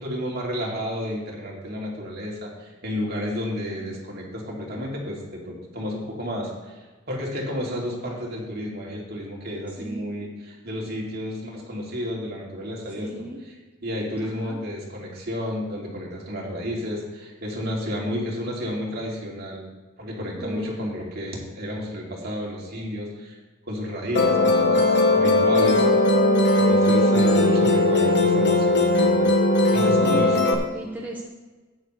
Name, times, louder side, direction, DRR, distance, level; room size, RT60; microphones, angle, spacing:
voice 1, 0.0-13.1 13.4-19.7 20.0-23.4 23.7-25.9 26.6-29.3 29.7-30.4, equal, 50° right, -3 dB, 2.7 m, -31 dB
voice 2, 13.0-13.4 14.2-14.6 20.4-20.8 26.6-27.1 29.8-31.2, right 1 dB, 10° right, -3 dB, 1.2 m, -35 dB
Musical instrument, 24.1-30.5, left 2 dB, 55° left, 1.2 m, -18 dB
12.5 x 9.4 x 3.3 m, 1.3 s
head